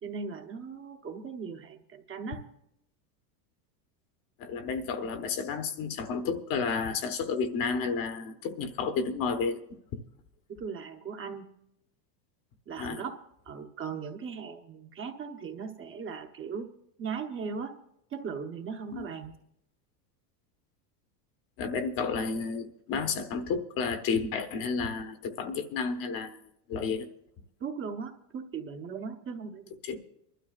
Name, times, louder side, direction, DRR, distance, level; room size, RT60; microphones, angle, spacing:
voice 1, 0.0-2.4 10.6-11.5 12.7-16.7 17.0-17.8 18.1-19.3 27.6-29.6 29.9-30.0, right 5 dB, 25° right, 4 dB, 1.0 m, -38 dB
voice 2, 4.4-9.6 12.8-13.0 18.9-19.1 21.6-26.4 26.7-27.1 29.8-30.0, left 5 dB, 40° left, 8 dB, 1.2 m, -31 dB
24.0 x 12.5 x 2.4 m, 0.78 s
supercardioid pair, 140°, 49 cm